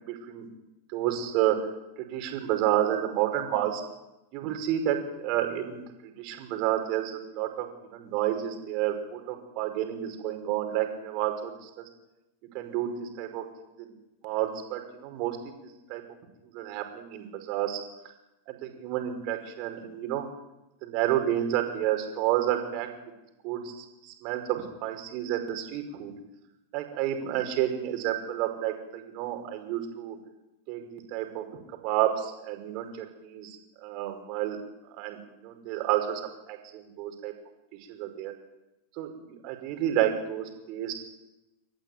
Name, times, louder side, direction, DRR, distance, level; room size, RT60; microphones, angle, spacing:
voice 1, 0.1-0.5 0.9-1.6 2.0-3.8 4.3-5.8 6.2-11.7 12.5-13.5 13.8-13.9 14.2-15.4 15.9-16.0 16.5-17.8 18.5-20.3 20.8-22.9 23.4-26.1 26.7-30.2 30.7-31.4 31.8-34.6 35.0-37.3 37.9-38.3 39.0-40.9, right 12 dB, 45° right, 6 dB, 5.4 m, -30 dB
30.0 x 15.0 x 9.6 m, 0.95 s
figure-of-eight pair, 90°, 0 cm